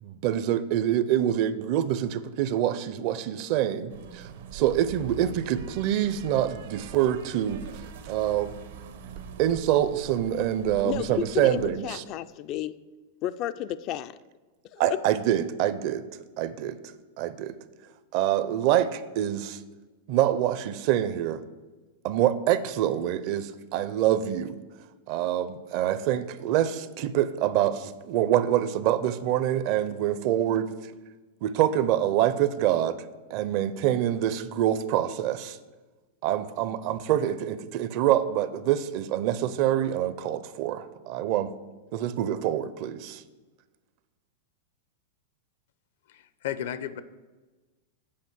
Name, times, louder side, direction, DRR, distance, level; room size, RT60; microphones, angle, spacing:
voice 1, 0.0-7.6 8.1-8.5 9.4-12.0 14.8-16.1 16.4-16.8 17.2-17.6 18.1-19.6 20.1-21.4 22.0-24.6 25.1-30.7 31.4-33.0 33.3-35.6 36.2-41.5 41.9-43.2, right 11 dB, 50° right, 14 dB, 0.5 m, -26 dB
sound 1, 3.9-11.7, right 7 dB, 80° right, 1.1 m, -43 dB
voice 2, 10.8-12.7 13.2-14.2 14.7-15.0, left 12 dB, 40° left, 12 dB, 0.3 m, -32 dB
voice 3, 46.1-47.0, left 10 dB, 70° left, 14 dB, 0.6 m, -34 dB
8.6 x 5.0 x 7.5 m, 1.2 s
supercardioid pair, 140°, 0 cm